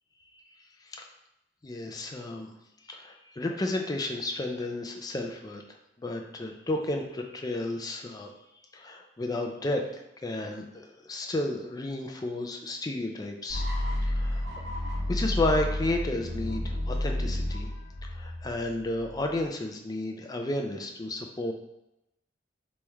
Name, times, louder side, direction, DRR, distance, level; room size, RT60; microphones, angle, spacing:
voice 1, 1.6-2.5 2.8-5.6 6.0-8.3 8.7-9.9 10.2-13.7 14.0-14.4 15.1-17.7 18.0-21.5, left 2 dB, 20° left, 2 dB, 0.4 m, -32 dB
sound 1, 13.5-19.4, left 1 dB, 65° right, 1.2 m, -31 dB
3.1 x 3.1 x 3.5 m, 0.90 s
head